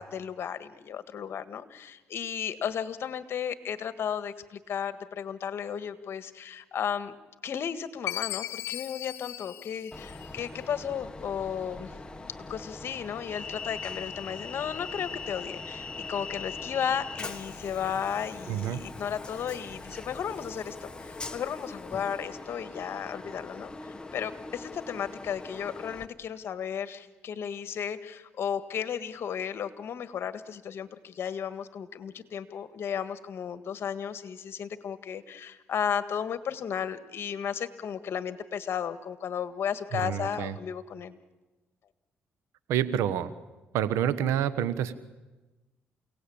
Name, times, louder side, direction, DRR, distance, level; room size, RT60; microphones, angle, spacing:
voice 1, 0.0-7.1 7.4-11.9 12.5-23.7 24.1-41.2, left 8 dB, 60° left, 12 dB, 1.7 m, -34 dB
Chime, 8.1-10.6, left 13 dB, 80° left, 1.2 m, -37 dB
Train, 9.9-26.1, left 3 dB, 20° left, 1.7 m, -41 dB
voice 2, 18.5-18.8 39.9-40.5 42.7-43.3 43.7-44.9, right 10 dB, 85° right, 14 dB, 1.3 m, -28 dB
29.5 x 18.0 x 8.7 m, 1.2 s
cardioid pair, 80°, 5 cm